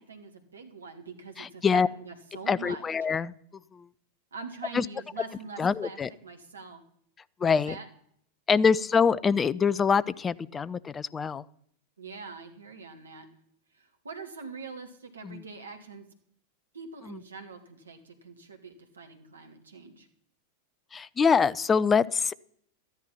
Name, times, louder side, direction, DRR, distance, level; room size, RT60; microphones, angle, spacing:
voice 1, 0.1-2.8 4.3-6.8 7.4-7.9 12.0-13.3 13.7-16.0 16.7-20.1, right 4 dB, 75° right, 6 dB, 1.9 m, -44 dB
voice 2, 1.4-1.9 2.5-3.3 3.7-3.9 4.7-4.9 5.6-6.1 7.4-7.8 8.5-11.4 15.2-15.4 17.0-17.2 20.9-22.3, left 6 dB, 20° left, 19 dB, 0.4 m, -25 dB
13.0 x 10.5 x 5.7 m, 0.67 s
figure-of-eight pair, 90°, 0 cm